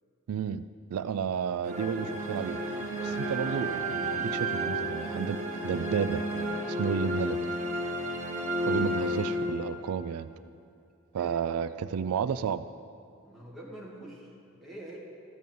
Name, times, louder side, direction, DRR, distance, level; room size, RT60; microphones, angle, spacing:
voice 1, 0.3-0.6 0.9-2.6 3.0-6.2 6.7-7.5 8.7-10.3 11.1-12.6, right 7 dB, 85° right, 13 dB, 0.3 m, -32 dB
sound 1, 1.6-10.0, equal, 35° right, 1.0 m, -32 dB
voice 2, 13.2-15.0, right 1 dB, ahead, -5 dB, 1.8 m, -45 dB
13.5 x 5.4 x 7.6 m, 2.5 s
head